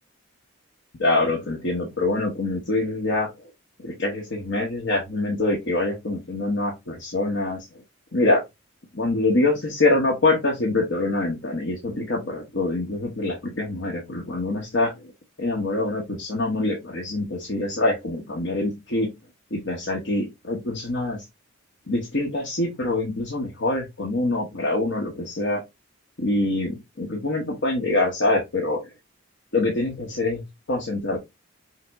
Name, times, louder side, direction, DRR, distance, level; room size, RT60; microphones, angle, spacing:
voice 1, 1.0-3.3 3.8-7.6 8.1-8.4 8.9-15.1 15.4-19.1 19.5-21.2 21.9-25.6 26.2-28.8 29.5-30.4 30.7-31.2, left 2 dB, 60° left, -1 dB, 1.0 m, -25 dB
5.7 x 2.0 x 3.4 m, 0.21 s
head